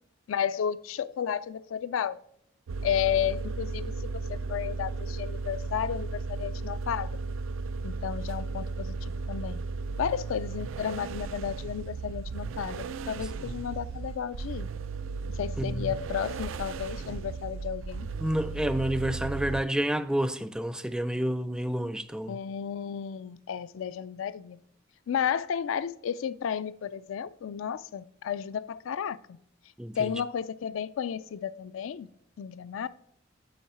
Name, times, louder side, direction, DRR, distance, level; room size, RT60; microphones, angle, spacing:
voice 1, 0.3-2.2 2.8-7.1 7.8-9.6 10.0-14.7 15.3-18.1 22.3-24.6 25.1-29.2 30.0-32.1 32.4-32.9, left 8 dB, 80° left, 0.4 m, -32 dB
sound 1, 2.7-19.6, right 4 dB, 80° right, 0.4 m, -35 dB
voice 2, 15.6-15.9 18.2-22.4 29.8-30.2, right 1 dB, 5° right, 0.4 m, -29 dB
7.2 x 4.7 x 4.6 m
head